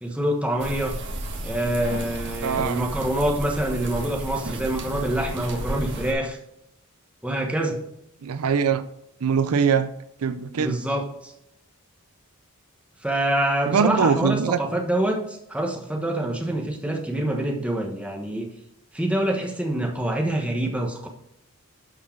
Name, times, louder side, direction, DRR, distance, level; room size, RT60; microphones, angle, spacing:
voice 1, 0.0-1.0 1.4-6.4 7.2-7.8 10.6-11.3 13.0-18.5 18.9-21.1, right 1 dB, 5° right, 1.2 m, -26 dB
sound 1, 0.6-6.1, right 1 dB, 55° right, 1.4 m, -33 dB
voice 2, 2.4-2.8 8.2-8.8 9.2-9.9 10.2-10.8 13.7-14.6, right 6 dB, 75° right, 0.5 m, -22 dB
11.5 x 4.7 x 4.5 m
head